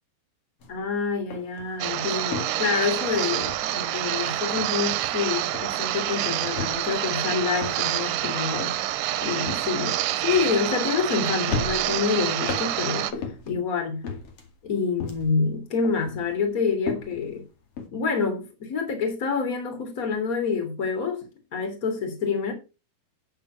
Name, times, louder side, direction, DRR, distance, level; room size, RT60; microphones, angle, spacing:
sound 1, 0.6-0.8 1.1-4.1 4.4-5.3 5.5-5.9 6.4-11.1 11.5-13.6 14.0-15.5 15.8-17.9, left 5 dB, 45° left, 2.6 m, -36 dB
voice 1, 0.7-8.9 9.2-13.1 13.4-14.0 14.6-17.4 17.9-22.5, left 5 dB, 25° left, 2.8 m, -27 dB
sound 2, 1.8-13.1, right 14 dB, 85° right, 2.8 m, -27 dB
9.6 x 9.3 x 4.6 m
omnidirectional pair, 4.5 m